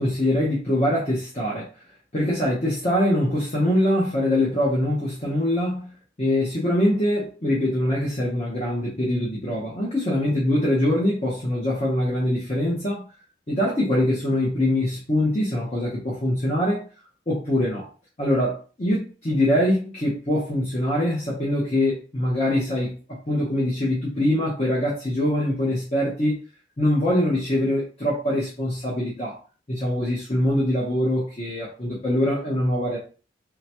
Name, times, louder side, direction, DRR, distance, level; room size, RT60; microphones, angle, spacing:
voice 1, 0.0-1.7 2.1-13.0 13.5-16.8 17.3-17.9 18.2-26.4 26.8-29.4 29.7-33.0, left 1 dB, 35° left, -5 dB, 0.9 m, -23 dB
3.8 x 2.2 x 2.9 m, 0.36 s
head